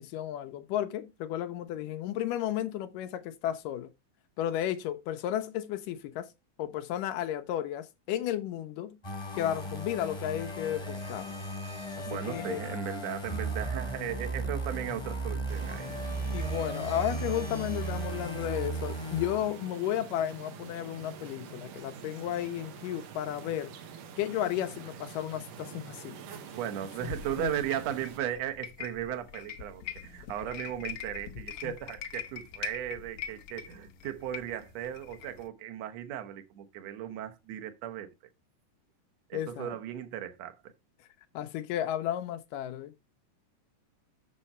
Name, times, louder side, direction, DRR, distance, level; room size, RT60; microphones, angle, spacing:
voice 1, 0.0-3.9 4.4-6.3 6.6-9.0 9.3-11.3 12.0-12.6 16.3-23.7 24.2-26.2 27.0-27.1 27.4-27.5 31.6-31.7 39.3-39.8 41.3-42.9, left 11 dB, 85° left, 2.4 m, -33 dB
sound 1, 9.0-19.9, right 2 dB, 15° left, 1.1 m, -36 dB
voice 2, 12.1-15.9 26.6-38.1 39.3-40.6, right 11 dB, 65° right, 2.0 m, -36 dB
sound 2, 15.5-28.2, right 6 dB, 85° right, 3.0 m, -46 dB
sound 3, 27.0-35.5, left 9 dB, 65° left, 1.6 m, -43 dB
7.3 x 6.8 x 4.3 m
omnidirectional pair, 3.7 m